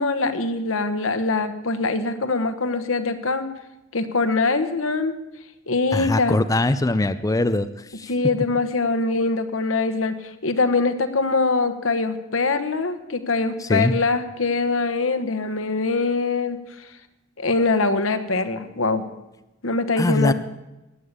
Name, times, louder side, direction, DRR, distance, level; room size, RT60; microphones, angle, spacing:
voice 1, 0.0-3.4 3.9-5.1 5.7-6.4 8.1-16.9 17.4-19.0 19.6-20.3, left 3 dB, 85° left, 10 dB, 1.3 m, -23 dB
voice 2, 5.9-8.1 13.6-13.9 20.0-20.3, left 2 dB, 15° left, 11 dB, 0.5 m, -22 dB
15.0 x 9.9 x 8.2 m, 1.0 s
head